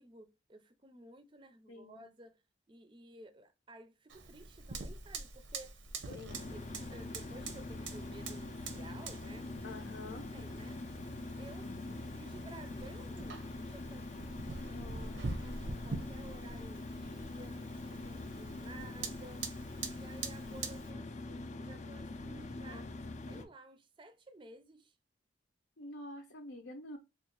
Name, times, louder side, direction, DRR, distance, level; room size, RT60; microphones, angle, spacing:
voice 1, 0.0-2.4 2.7-5.8 6.1-6.2 6.5-9.8 10.3-10.8 11.4-14.8 15.1-22.9 23.3-25.0, right 2 dB, 25° right, 0.4 m, -55 dB
voice 2, 1.7-2.1 6.1-6.6 9.6-10.3 11.6-12.0 14.6-15.2 18.7-18.9 22.6-22.9 25.8-27.0, left 2 dB, 85° left, 0.6 m, -48 dB
Fire, 4.1-20.9, right 3 dB, 90° right, 0.7 m, -45 dB
sound 1, 6.3-23.4, left 2 dB, 40° left, 0.4 m, -44 dB
3.7 x 2.4 x 2.9 m
head